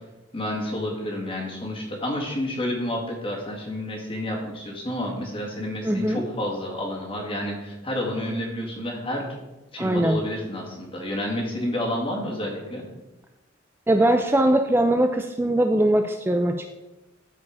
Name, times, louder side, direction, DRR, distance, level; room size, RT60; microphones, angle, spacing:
voice 1, 0.3-9.2 9.7-12.8, left 1 dB, 30° left, -1 dB, 2.2 m, -30 dB
voice 2, 5.8-6.2 9.8-10.2 13.9-16.7, right 1 dB, 10° right, 5 dB, 0.4 m, -21 dB
13.0 x 4.9 x 4.8 m, 1.0 s
head